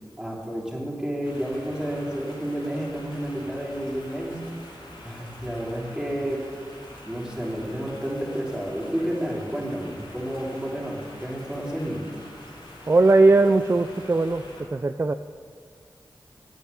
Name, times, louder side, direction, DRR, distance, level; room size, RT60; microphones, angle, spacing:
voice 1, 0.2-4.6 5.0-6.5 7.0-12.1, equal, 10° right, -4 dB, 3.2 m, -30 dB
sound 1, 1.2-14.6, left 1 dB, 85° left, 2.7 m, -45 dB
voice 2, 12.9-14.4 14.7-15.1, right 3 dB, 30° right, 10 dB, 0.4 m, -19 dB
9.4 x 8.8 x 6.9 m, 2.1 s
cardioid pair, 45°, 9 cm